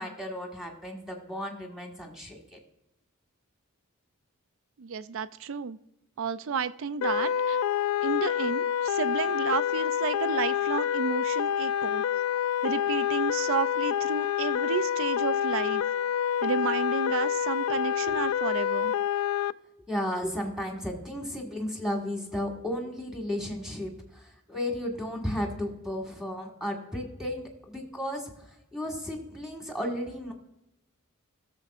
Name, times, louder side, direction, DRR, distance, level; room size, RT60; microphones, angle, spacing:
voice 1, 0.0-2.6 18.1-18.2 19.9-30.3, left 1 dB, ahead, 1 dB, 1.6 m, -34 dB
voice 2, 4.8-5.8 6.2-7.6 8.0-12.0 12.6-15.8 16.4-18.9, right 6 dB, 65° right, 14 dB, 0.4 m, -32 dB
sound 1, 7.0-19.5, left 9 dB, 80° left, 0.3 m, -27 dB
17.5 x 7.1 x 2.4 m, 0.91 s
head